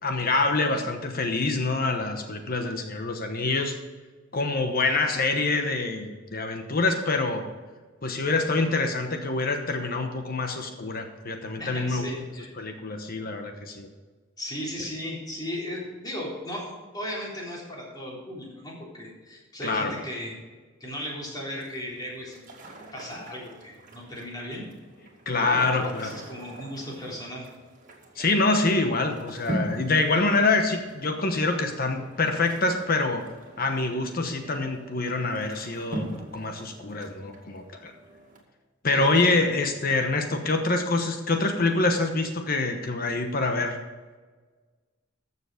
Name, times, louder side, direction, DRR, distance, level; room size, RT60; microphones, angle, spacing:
voice 1, 0.0-3.8 4.3-7.4 8.0-12.1 12.6-13.9 19.6-20.0 25.3-26.1 28.2-33.2 33.6-37.9 38.8-43.8, left 3 dB, 50° left, 5 dB, 1.1 m, -26 dB
voice 2, 11.6-12.5 14.4-20.3 20.8-22.5 22.9-24.7 25.3-27.5 38.9-39.3, left 1 dB, 20° left, -4 dB, 3.8 m, -36 dB
sound 1, 21.6-38.4, right 1 dB, 40° right, 2.2 m, -42 dB
14.0 x 7.0 x 5.0 m, 1.4 s
head